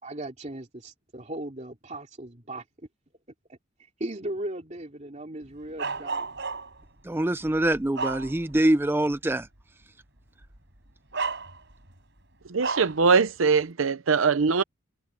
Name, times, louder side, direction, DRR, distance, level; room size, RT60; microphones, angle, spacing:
voice 1, 0.0-2.9 3.5-3.6 4.0-6.3, right 1 dB, 35° right, 2.9 m, -37 dB
Bark, 5.8-6.9 7.5-8.7 9.1-9.3 10.4-10.6 11.1-11.9 12.6-13.0, right 4 dB, 60° right, 6.9 m, -32 dB
voice 2, 7.0-9.5, right 1 dB, 10° right, 0.4 m, -24 dB
voice 3, 12.5-14.6, right 5 dB, 80° right, 0.7 m, -22 dB
head